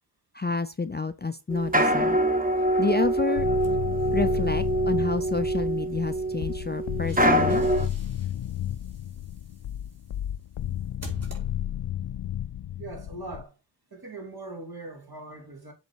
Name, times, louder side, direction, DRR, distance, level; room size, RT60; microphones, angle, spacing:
voice 1, 0.3-2.2 2.8-3.5 4.1-7.6, left 4 dB, 25° left, 0.5 m, -29 dB
sound 1, 1.5-7.9, right 1 dB, 20° right, 1.2 m, -25 dB
sound 2, 3.4-13.4, left 11 dB, 85° left, 0.6 m, -32 dB
sound 3, 3.6-4.7 6.6-12.0, equal, 35° right, 3.4 m, -48 dB
voice 2, 12.8-13.5 13.9-15.7, right 2 dB, 55° right, 3.1 m, -40 dB
7.9 x 4.1 x 4.7 m
wide cardioid pair, 55°, 44 cm